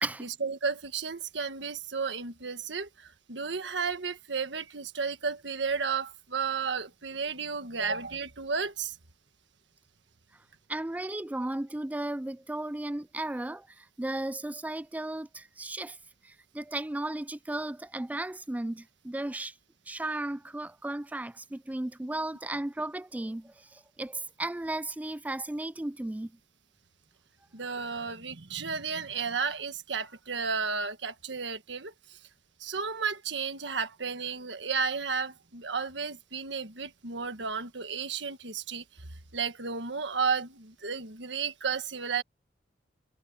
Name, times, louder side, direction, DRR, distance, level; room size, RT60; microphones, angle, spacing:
voice 1, 0.2-9.0 27.5-32.2 32.6-42.2, right 5 dB, 70° right, 1.6 m, -33 dB
voice 2, 10.7-16.0 16.2-19.5 19.9-26.3, right 1 dB, 10° right, 0.3 m, -35 dB
head